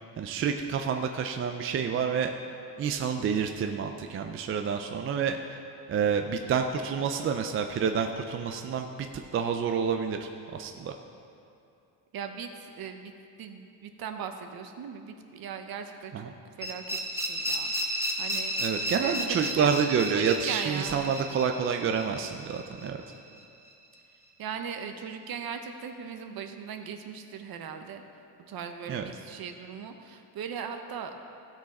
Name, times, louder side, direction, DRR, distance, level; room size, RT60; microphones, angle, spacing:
voice 1, 0.2-2.3 2.8-5.6 5.9-9.1 9.3-10.9 16.1-16.3 18.6-23.0 28.9-29.1, right 6 dB, 30° right, 5 dB, 0.4 m, -28 dB
voice 2, 12.1-13.1 13.4-18.5 19.0-19.7 20.1-21.1 24.4-28.0 28.4-31.2, right 7 dB, 55° right, 6 dB, 0.9 m, -39 dB
sound 1, 16.6-23.4, right 1 dB, 5° right, 0.9 m, -33 dB
16.0 x 6.4 x 4.2 m, 2.7 s
cardioid pair, 155°, 43 cm